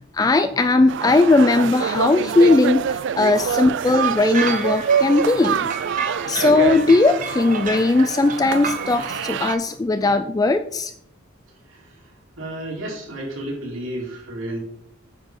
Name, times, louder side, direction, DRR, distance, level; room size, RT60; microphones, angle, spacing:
voice 1, 0.1-5.7 6.2-10.9, left 2 dB, 20° left, 10 dB, 0.3 m, -18 dB
sound 1, 0.9-9.6, right 7 dB, 60° right, 0.3 m, -25 dB
sound 2, 3.9-9.5, right 5 dB, 40° right, 1.1 m, -32 dB
voice 2, 11.7-14.6, right 1 dB, 75° right, -3 dB, 3.8 m, -32 dB
9.0 x 5.4 x 5.8 m, 0.73 s
head